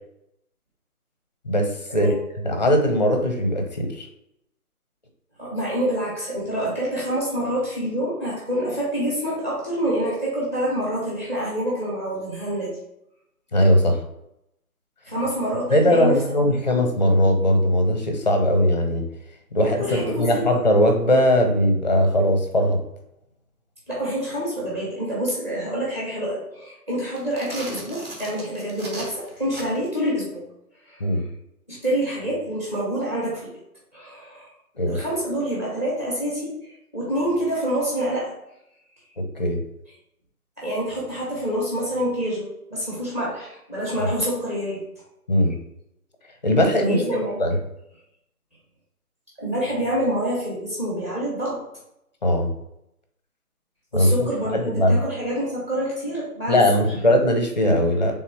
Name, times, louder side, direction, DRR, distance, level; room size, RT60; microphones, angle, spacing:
voice 1, 1.4-2.1 2.4-4.1 13.5-14.0 15.7-19.0 19.5-19.8 20.2-22.8 31.0-31.2 34.8-35.0 39.2-39.6 45.3-45.6 46.4-47.0 47.4-47.5 52.2-52.5 53.9-55.0 56.5-58.1, equal, 30° left, 5 dB, 0.5 m, -19 dB
voice 2, 5.4-12.7 15.0-16.2 16.5-16.8 19.8-20.5 23.9-30.4 30.9-31.0 31.7-33.5 33.9-34.5 34.9-38.3 40.6-44.8 46.9-47.4 49.4-51.6 53.9-56.6, equal, 10° right, -6 dB, 0.7 m, -27 dB
sound 1, 27.1-30.0, right 2 dB, 40° right, 1.1 m, -38 dB
3.5 x 3.1 x 4.4 m, 0.81 s
figure-of-eight pair, 155°, 46 cm